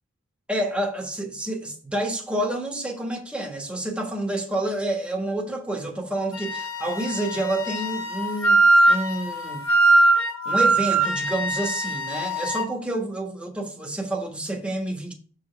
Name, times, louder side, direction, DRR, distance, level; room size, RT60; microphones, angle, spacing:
voice 1, 0.5-8.6 8.9-9.6 10.4-15.1, right 1 dB, 5° right, 1.4 m, -28 dB
Wind instrument woodwind instrument, 6.3-12.7, right 2 dB, 75° left, 1.2 m, -21 dB
7.7 x 4.9 x 4.6 m
head